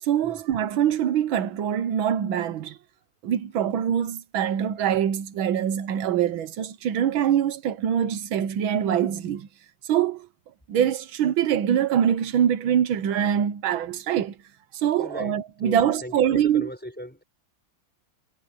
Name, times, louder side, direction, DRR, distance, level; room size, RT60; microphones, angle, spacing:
voice 1, 0.0-2.8 3.2-9.5 9.9-10.3 10.7-14.3 14.7-16.7, right 9 dB, 85° right, 1.8 m, -24 dB
voice 2, 15.0-17.2, equal, 5° left, 5.4 m, -38 dB
omnidirectional pair, 2.1 m